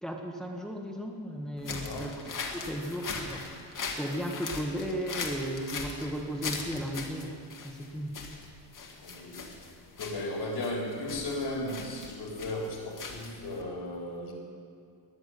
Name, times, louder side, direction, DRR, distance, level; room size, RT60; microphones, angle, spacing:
voice 1, 0.0-2.1 2.5-8.2, equal, ahead, 1 dB, 1.5 m, -35 dB
voice 2, 1.6-2.1 9.0-9.4 10.0-14.3, left 1 dB, 70° left, 0 dB, 3.8 m, -35 dB
sound 1, 1.6-13.6, left 4 dB, 45° left, 2.0 m, -40 dB
20.5 x 7.3 x 9.3 m, 2.3 s
wide cardioid pair, 150°, 43 cm